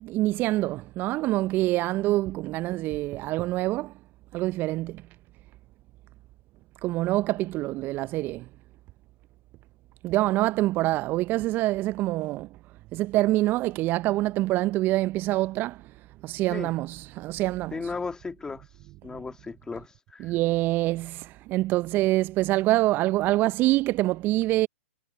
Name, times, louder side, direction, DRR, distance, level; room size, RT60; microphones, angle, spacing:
voice 1, 0.0-3.9 4.3-5.0 6.8-8.5 10.0-12.5 12.9-15.9 16.2-17.9 19.1-19.2 20.2-24.7, right 17 dB, 30° right, 0.6 m, -25 dB
voice 2, 17.7-18.6 19.0-20.3, left 4 dB, 10° left, 2.3 m, -35 dB
figure-of-eight pair, 110°, 6 cm